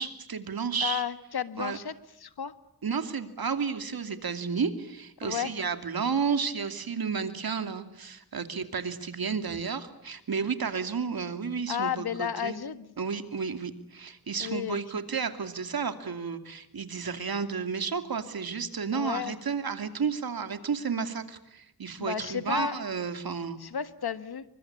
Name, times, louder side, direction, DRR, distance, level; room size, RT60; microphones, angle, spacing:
voice 1, 0.0-1.0 1.6-1.8 2.8-12.6 13.0-23.6, right 5 dB, 70° right, 9 dB, 2.7 m, -32 dB
voice 2, 0.8-1.9 2.2-2.5 5.2-5.5 11.7-12.9 14.4-14.8 18.9-19.3 22.0-22.8 23.6-24.4, left 8 dB, 85° left, 13 dB, 1.6 m, -32 dB
28.5 x 24.0 x 8.5 m, 0.76 s
wide cardioid pair, 115°, 37 cm